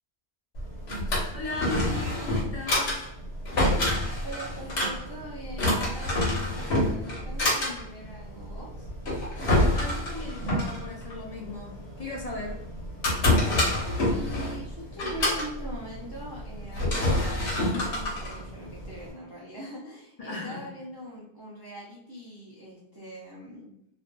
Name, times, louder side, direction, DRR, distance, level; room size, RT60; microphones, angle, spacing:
Drawer open or close, 0.5-19.1, left 1 dB, 70° left, 1.1 m, -28 dB
voice 1, 1.3-3.1 9.7-12.7 20.2-20.7, left 2 dB, 50° left, -2 dB, 0.4 m, -37 dB
voice 2, 4.2-8.9 14.1-23.7, equal, 35° right, -5 dB, 0.4 m, -42 dB
2.6 x 2.3 x 2.2 m, 0.78 s
omnidirectional pair, 1.1 m